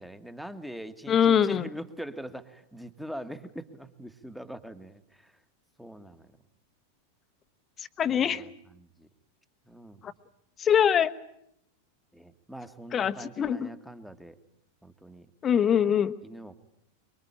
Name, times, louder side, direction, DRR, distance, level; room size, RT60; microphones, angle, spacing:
voice 1, 0.0-5.3 5.8-6.3 8.1-9.1 9.7-10.0 12.1-14.4 14.8-15.3 16.2-16.6, equal, ahead, 11 dB, 1.5 m, -43 dB
voice 2, 1.1-1.7 8.0-8.4 10.0-10.1 10.6-11.1 12.9-13.7 15.4-16.1, left 8 dB, 25° left, 11 dB, 1.1 m, -23 dB
24.5 x 23.5 x 8.8 m, 0.78 s
figure-of-eight pair, 90°, 0 cm